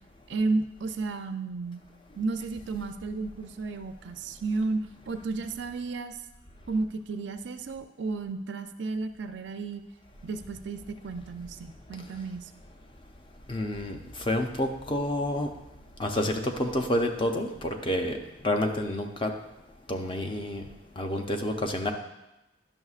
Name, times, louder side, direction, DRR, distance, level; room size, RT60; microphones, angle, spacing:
voice 1, 0.3-1.8 2.2-6.2 6.7-9.8 10.2-12.5, right 3 dB, 65° right, 8 dB, 0.4 m, -32 dB
voice 2, 13.5-15.5 16.0-18.2 18.4-19.3 19.9-20.7 21.0-21.9, left 1 dB, 25° left, 4 dB, 0.5 m, -29 dB
11.0 x 6.2 x 2.4 m, 0.96 s
head